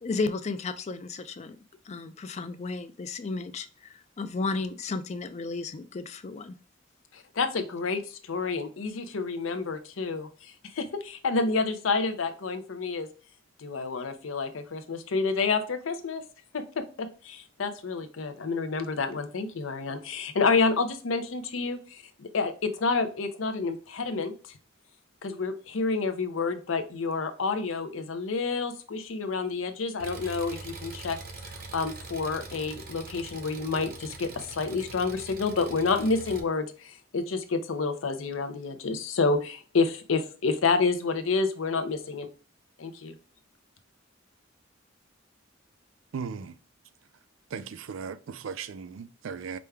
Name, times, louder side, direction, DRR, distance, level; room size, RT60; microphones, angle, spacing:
voice 1, 0.0-1.6 1.9-6.5, left 3 dB, 35° left, 0.4 m, -33 dB
voice 2, 7.1-13.1 13.6-16.2 16.5-24.3 25.2-31.2 31.7-42.3 42.8-43.1, left 4 dB, 80° left, 0.6 m, -29 dB
Engine, 30.0-36.4, right 3 dB, 50° right, 0.7 m, -43 dB
voice 3, 46.1-46.6 47.5-49.6, right 6 dB, 75° right, 0.4 m, -37 dB
5.0 x 2.3 x 3.3 m
head